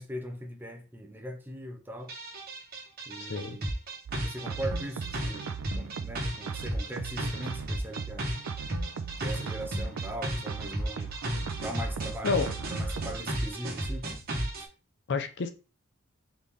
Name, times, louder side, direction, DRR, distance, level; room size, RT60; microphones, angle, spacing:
voice 1, 0.0-2.1 3.1-3.7 4.2-5.5 5.8-8.3 9.2-11.1 11.6-14.1 14.6-14.7, right 1 dB, 10° right, 0.7 m, -40 dB
sound 1, 2.1-14.6, right 1 dB, 45° right, 1.2 m, -34 dB
voice 2, 3.2-3.6 12.2-12.5 15.1-15.5, left 4 dB, 55° left, 0.5 m, -29 dB
sound 2, 4.1-13.2, right 5 dB, 85° right, 0.4 m, -39 dB
4.2 x 3.2 x 3.5 m
head